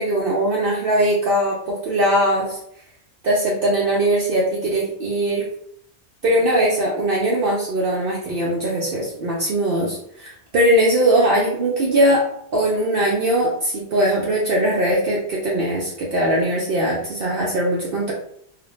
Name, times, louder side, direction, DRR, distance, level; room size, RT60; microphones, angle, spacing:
voice 1, 0.0-2.6 3.2-5.4 6.2-12.3 12.5-18.1, right 1 dB, 60° right, -4 dB, 0.7 m, -20 dB
2.4 x 2.1 x 3.0 m, 0.70 s
omnidirectional pair, 1.2 m